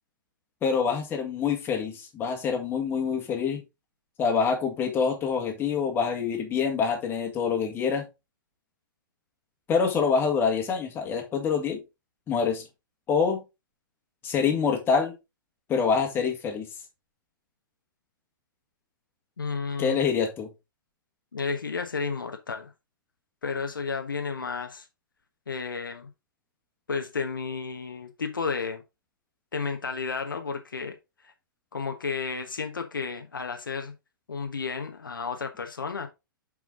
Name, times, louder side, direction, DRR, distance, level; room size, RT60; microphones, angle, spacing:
voice 1, 0.6-3.6 4.2-8.1 9.7-11.8 12.3-12.6 13.1-13.4 14.2-15.1 15.7-16.7 19.8-20.5, left 6 dB, 20° left, 2.1 m, -26 dB
voice 2, 19.4-20.0 21.3-22.7 23.4-24.9 25.5-26.1 26.9-28.8 29.5-31.0 31.2-31.3 31.7-33.9 34.3-36.1, left 5 dB, 70° left, 1.1 m, -32 dB
7.2 x 5.0 x 3.8 m
figure-of-eight pair, 110°, 11 cm